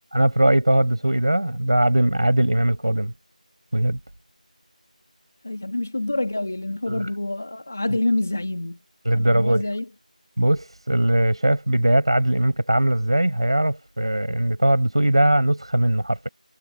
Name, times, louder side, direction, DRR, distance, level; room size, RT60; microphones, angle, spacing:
voice 1, 0.1-3.1 3.7-4.0 6.9-7.1 9.0-9.7 10.4-16.3, right 1 dB, 40° right, 6.8 m, -20 dB
voice 2, 5.4-8.8 9.1-9.9, left 2 dB, 15° left, 1.8 m, -27 dB
figure-of-eight pair, 180°, 4 cm